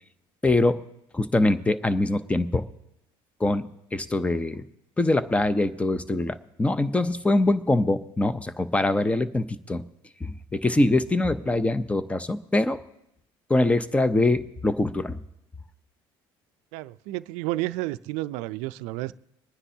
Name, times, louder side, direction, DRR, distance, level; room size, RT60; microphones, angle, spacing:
voice 1, 0.4-0.8 1.1-2.6 3.4-4.6 5.0-9.8 10.2-12.8 13.5-15.2, left 2 dB, 10° left, 14 dB, 0.6 m, -23 dB
voice 2, 16.7-19.1, right 18 dB, 80° right, 15 dB, 0.4 m, -31 dB
24.0 x 9.8 x 2.8 m, 0.82 s
supercardioid pair, 100°, 12 cm